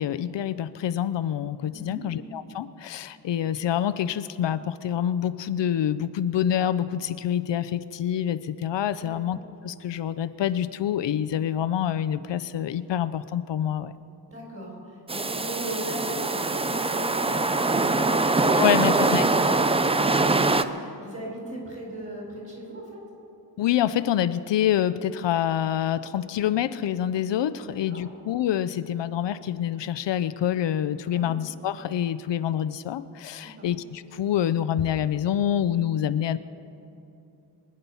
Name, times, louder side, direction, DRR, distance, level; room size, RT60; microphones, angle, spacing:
voice 1, 0.0-9.4 9.6-13.9 18.6-19.3 23.6-36.4, left 10 dB, 80° left, 13 dB, 0.6 m, -26 dB
voice 2, 1.7-2.0 9.0-9.2 14.3-19.0 19.5-23.0 27.6-28.0 31.1-31.3 33.6-33.7, right 1 dB, 30° right, -2 dB, 4.6 m, -38 dB
sound 1, 15.1-20.6, right 3 dB, 15° right, 0.3 m, -23 dB
24.5 x 9.7 x 5.5 m, 2.8 s
wide cardioid pair, 170°, 43 cm